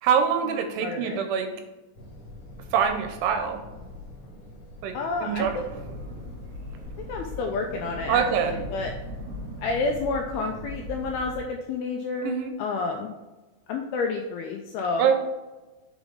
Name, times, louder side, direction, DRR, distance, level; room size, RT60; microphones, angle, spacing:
voice 1, 0.0-1.5 2.7-3.6 4.8-5.6 8.1-8.5 12.2-12.5 15.0-15.1, right 7 dB, 80° right, 6 dB, 2.5 m, -24 dB
voice 2, 0.8-1.2 4.9-5.7 7.1-8.9 9.6-13.1 13.7-15.1, left 3 dB, 90° left, 2 dB, 2.2 m, -30 dB
sound 1, 1.9-10.0, left 2 dB, 55° left, 2.2 m, -46 dB
sound 2, 5.4-11.4, equal, 45° right, 2.5 m, -38 dB
6.1 x 4.8 x 3.7 m, 1.2 s
omnidirectional pair, 5.0 m